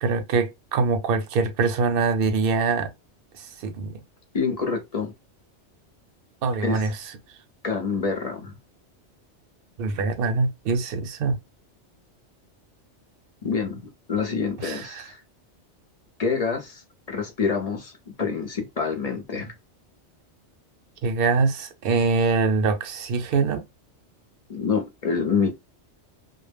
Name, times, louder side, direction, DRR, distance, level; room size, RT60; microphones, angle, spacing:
voice 1, 0.0-2.9 3.3-4.0 6.4-7.0 9.8-11.4 14.6-15.1 21.0-23.6, right 4 dB, 60° right, 0.7 m, -24 dB
voice 2, 4.3-5.1 6.6-6.8 7.6-8.6 13.4-15.2 16.2-16.8 17.1-19.5 24.5-25.5, left 5 dB, 45° left, 0.5 m, -27 dB
2.0 x 2.0 x 3.3 m
omnidirectional pair, 1.2 m